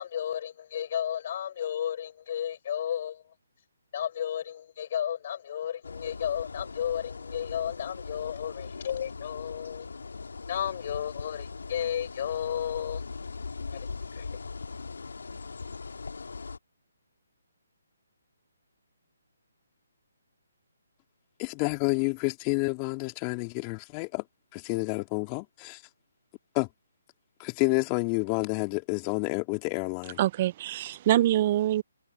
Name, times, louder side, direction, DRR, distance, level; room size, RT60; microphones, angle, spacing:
voice 1, 0.0-3.2 3.9-9.9 10.5-13.0 13.7-13.8 14.1-14.3, left 9 dB, 45° left, 4.7 m, -33 dB
sound 1, 5.8-16.6, left 4 dB, 75° left, 1.9 m, -40 dB
voice 2, 21.4-24.3 24.5-25.8 26.5-26.7 27.4-30.2, left 32 dB, 25° left, 3.0 m, -29 dB
voice 3, 30.2-31.8, right 13 dB, 35° right, 0.6 m, -24 dB
figure-of-eight pair, 145°, 0 cm